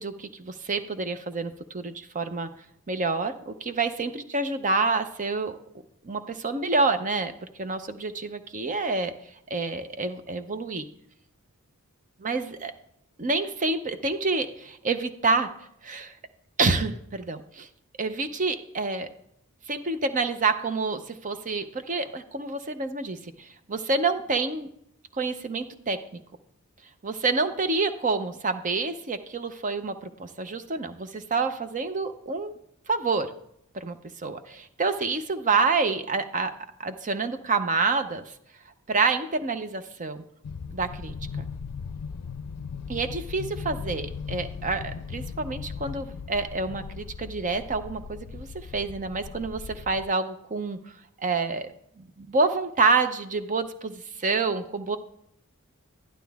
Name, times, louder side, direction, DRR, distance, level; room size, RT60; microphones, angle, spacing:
voice 1, 0.0-2.5 2.9-5.5 6.0-7.3 7.6-9.1 9.5-10.8 12.2-12.7 13.2-15.5 15.8-16.1 16.6-17.7 18.0-19.1 19.7-24.7 25.1-26.2 27.0-32.5 32.9-33.3 33.7-36.5 36.8-38.2 38.9-40.2 40.7-41.1 42.9-50.8 51.2-51.7 52.0-55.0, right 3 dB, 35° right, 9 dB, 0.7 m, -28 dB
sound 1, 40.4-50.1, left 6 dB, 90° left, 0.4 m, -38 dB
11.5 x 11.5 x 3.5 m, 0.72 s
head